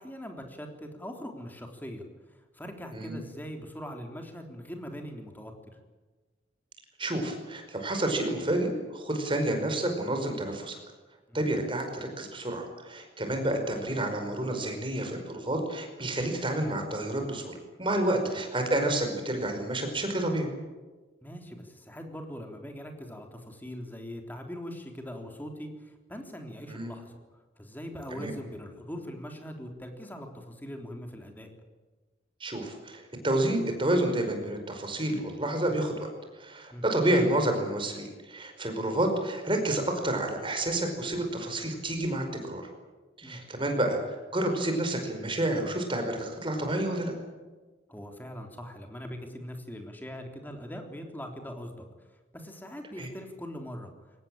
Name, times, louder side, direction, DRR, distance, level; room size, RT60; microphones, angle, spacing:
voice 1, 0.0-2.1 2.5-5.5 11.3-11.4 18.3-18.4 21.2-27.2 27.6-31.5 36.7-36.8 43.2-43.4 47.9-51.8 52.3-53.9, equal, 10° left, 4 dB, 3.5 m, -41 dB
voice 2, 7.0-10.8 11.3-20.5 26.7-26.9 28.1-28.3 32.4-36.1 36.3-42.6 43.2-47.1 53.0-53.1, right 1 dB, 25° right, 5 dB, 5.1 m, -29 dB
23.5 x 18.5 x 8.9 m, 1.3 s
head